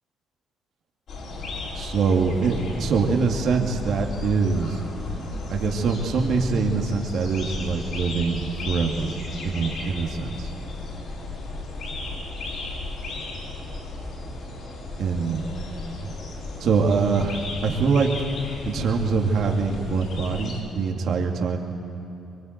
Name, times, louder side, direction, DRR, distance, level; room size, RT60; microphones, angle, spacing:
sound 1, 1.1-20.6, left 2 dB, 70° left, 7.1 m, -34 dB
voice 1, 1.7-4.8 5.5-9.1 9.4-10.5 15.0-15.4 15.9-16.1 16.6-18.1 18.6-21.6, right 5 dB, 70° right, 2 dB, 2.4 m, -24 dB
24.0 x 23.5 x 8.1 m, 3.0 s
cardioid pair, 90°, 0 cm